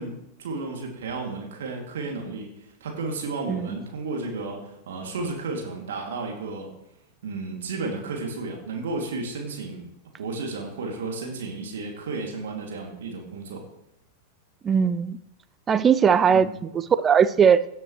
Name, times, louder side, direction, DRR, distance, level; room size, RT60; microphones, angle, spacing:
voice 1, 0.0-6.7 7.2-9.8 10.2-13.6 16.3-16.5, right 3 dB, 60° right, 1 dB, 2.5 m, -33 dB
voice 2, 14.6-15.2 15.7-16.5 16.7-17.6, right 7 dB, 20° right, 14 dB, 0.5 m, -19 dB
17.0 x 9.4 x 3.2 m, 0.86 s
figure-of-eight pair, 90°, 0 cm